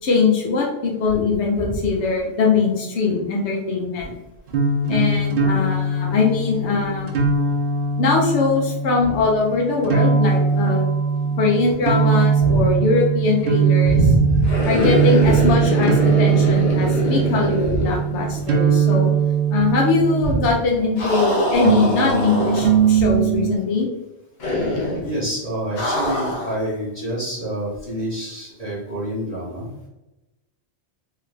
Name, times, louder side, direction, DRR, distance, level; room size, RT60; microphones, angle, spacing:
voice 1, 0.0-4.1 4.9-7.1 8.0-10.9 11.4-14.0 14.7-19.1 19.5-23.9, left 4 dB, 85° left, -1 dB, 1.0 m, -21 dB
sound 1, 4.5-20.8 21.6-23.6, right 6 dB, 60° right, 0.8 m, -20 dB
voice 2, 12.4-12.7 13.8-15.5 17.6-17.9 20.2-20.3 22.9-23.0 25.0-29.9, equal, 40° left, -9 dB, 1.2 m, -25 dB
sound 2, 14.4-18.6 18.8-18.9 21.0-23.0 24.4-25.1 25.8-26.6, left 1 dB, 65° left, 1.1 m, -24 dB
3.4 x 2.4 x 3.2 m, 0.98 s
omnidirectional pair, 1.1 m